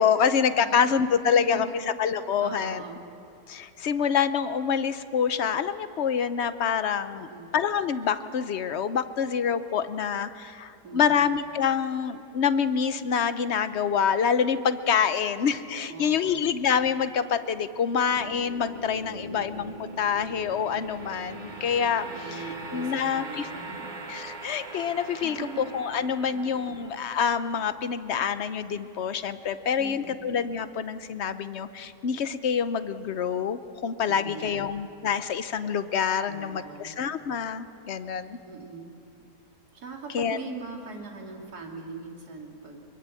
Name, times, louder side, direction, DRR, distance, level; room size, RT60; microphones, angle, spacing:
voice 1, 0.0-1.7 2.0-2.8 3.5-7.3 7.5-19.7 20.0-22.4 22.7-23.5 24.1-38.4 40.1-40.4, left 7 dB, 50° left, 12 dB, 0.9 m, -26 dB
voice 2, 0.6-1.8 2.4-3.0 7.1-7.5 10.8-11.2 15.9-16.5 19.1-19.5 22.1-23.9 25.2-25.6 26.3-26.4 29.8-30.2 34.1-34.7 36.3-36.9 38.4-38.9 39.7-42.8, right 4 dB, 65° right, 1 dB, 3.1 m, -40 dB
sound 1, 18.1-29.3, right 2 dB, 30° right, 1.5 m, -42 dB
23.5 x 23.0 x 8.4 m, 2.6 s
omnidirectional pair, 1.8 m